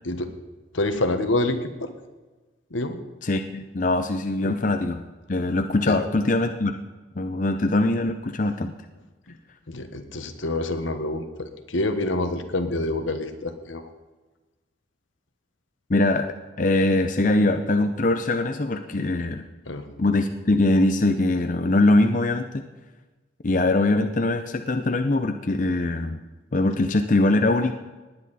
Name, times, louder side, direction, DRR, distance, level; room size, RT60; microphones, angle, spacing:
voice 1, 0.7-1.9 2.7-3.0 4.4-4.5 5.8-6.0 9.3-9.4 9.7-13.8 19.7-19.9, left 2 dB, 80° left, 8 dB, 1.3 m, -27 dB
voice 2, 3.2-5.0 5.3-6.8 7.2-8.7 15.9-19.4 20.0-22.6 23.4-26.2 26.5-27.7, left 2 dB, 40° left, 7 dB, 0.6 m, -22 dB
19.0 x 9.8 x 4.2 m, 1.2 s
head